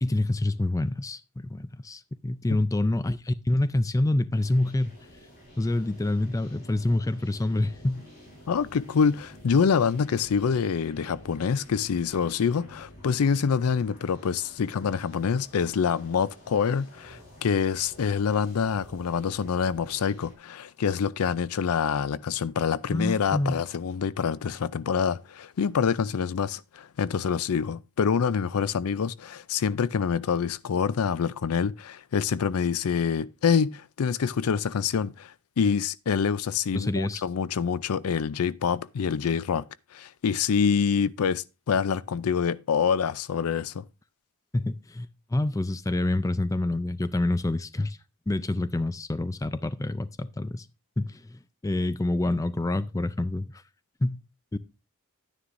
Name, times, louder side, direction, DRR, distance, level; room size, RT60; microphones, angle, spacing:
voice 1, 0.0-4.9 5.6-8.0 22.9-23.6 36.7-37.2 44.5-48.0 48.3-50.7 51.0-53.6 54.0-54.2 54.5-54.6, left 2 dB, 15° left, 0.4 m, -27 dB
sound 1, 4.3-20.3, left 1 dB, 40° left, 4.9 m, -50 dB
voice 2, 8.5-39.6 39.9-43.8, left 6 dB, 75° left, 0.4 m, -26 dB
11.0 x 9.8 x 2.5 m
head